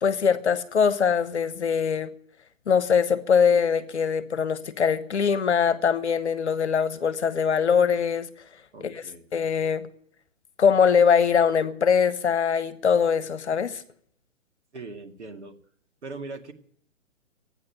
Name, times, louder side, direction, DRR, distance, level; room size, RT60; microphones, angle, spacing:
voice 1, 0.0-2.1 2.7-8.3 8.8-9.0 9.3-9.9 10.6-13.8, left 6 dB, 55° left, 1.3 m, -22 dB
voice 2, 8.7-9.2 14.7-15.6 16.0-16.5, right 3 dB, 60° right, 2.3 m, -40 dB
14.0 x 9.8 x 9.0 m
figure-of-eight pair, 135°, 39 cm